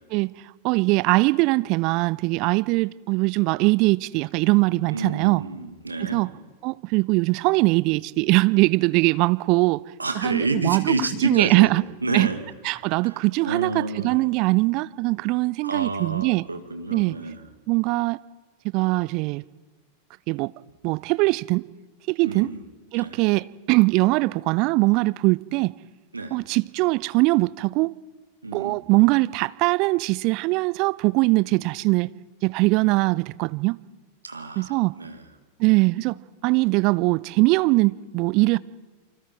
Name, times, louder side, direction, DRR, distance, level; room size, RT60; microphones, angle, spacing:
voice 1, 0.6-5.4 6.0-6.3 6.6-9.8 10.2-10.9 11.2-11.8 12.1-12.3 12.6-16.4 16.9-17.2 17.7-18.2 18.7-19.4 20.3-20.5 20.8-21.6 22.1-22.5 22.9-25.7 26.3-28.0 28.5-32.1 32.4-33.8 34.6-35.0 35.6-36.2 36.4-38.6, right 24 dB, 40° right, 0.6 m, -21 dB
voice 2, 4.9-6.2 10.0-11.7 12.0-12.4 13.0-14.3 15.6-17.4 22.2-22.6 23.0-23.2 26.1-26.4 28.4-28.8 34.2-35.2, right 3 dB, 80° right, 2.0 m, -29 dB
27.5 x 25.0 x 4.6 m
figure-of-eight pair, 90°, 0 cm